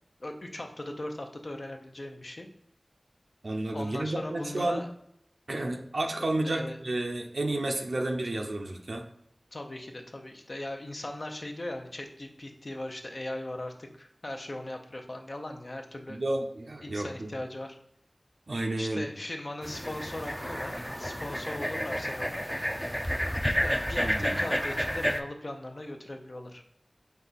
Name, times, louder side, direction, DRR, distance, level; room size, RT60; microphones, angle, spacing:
voice 1, 0.2-2.5 3.7-4.9 6.4-6.8 9.5-16.2 16.8-17.8 18.8-22.4 23.6-26.6, left 1 dB, 60° left, 4 dB, 0.7 m, -39 dB
voice 2, 3.4-4.8 5.5-9.0 16.1-17.3 18.5-19.1 24.0-24.5, right 2 dB, 85° right, 2 dB, 0.5 m, -31 dB
sound 1, 19.6-25.2, equal, 5° left, 0.4 m, -30 dB
5.3 x 2.4 x 3.9 m, 0.70 s
wide cardioid pair, 45°, 0 cm